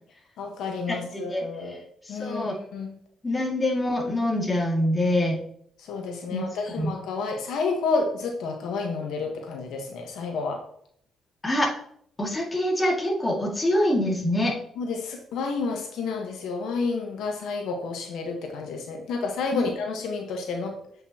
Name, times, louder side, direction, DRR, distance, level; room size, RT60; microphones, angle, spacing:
voice 1, 0.4-1.8 2.1-2.9 5.8-10.6 14.8-20.7, left 4 dB, 80° left, 2 dB, 1.3 m, -30 dB
voice 2, 0.9-1.4 2.0-2.6 3.2-5.4 6.3-6.4 6.8-6.9 11.4-11.7 12.2-14.6 19.5-19.7, left 1 dB, 20° left, -1 dB, 2.1 m, -25 dB
8.3 x 5.4 x 2.9 m, 0.64 s
cardioid pair, 90°, 0 cm